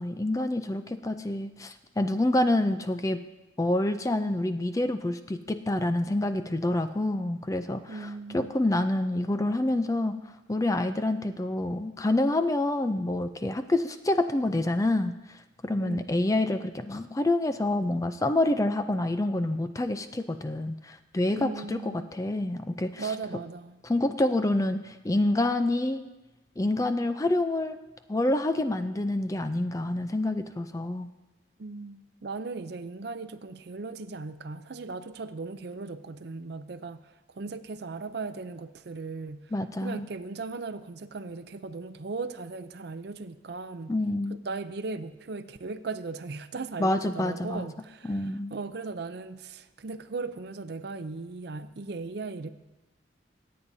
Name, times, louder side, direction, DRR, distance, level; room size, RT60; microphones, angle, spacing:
voice 1, 0.0-3.2 3.6-10.1 10.5-15.4 15.6-23.1 23.8-26.0 26.6-27.8 28.1-31.1 39.5-40.1 43.9-44.4 46.8-47.7 48.0-48.5, left 1 dB, 15° left, 9 dB, 0.4 m, -27 dB
voice 2, 7.9-8.6 15.8-16.2 21.3-22.1 23.0-23.8 31.6-43.9 44.4-52.5, right 3 dB, 55° right, 12 dB, 0.5 m, -38 dB
25.0 x 8.6 x 2.7 m, 1.0 s
head